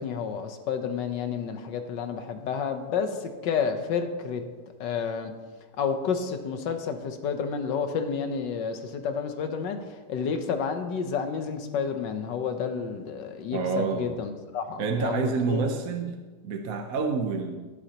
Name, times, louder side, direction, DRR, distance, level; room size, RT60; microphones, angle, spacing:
voice 1, 0.0-4.4 4.8-5.3 5.8-15.8, left 6 dB, 80° left, 7 dB, 1.5 m, -30 dB
voice 2, 13.5-14.2 14.8-16.2 16.4-17.6, right 4 dB, 60° right, 4 dB, 1.1 m, -28 dB
17.0 x 8.4 x 2.9 m, 1.3 s
omnidirectional pair, 1.9 m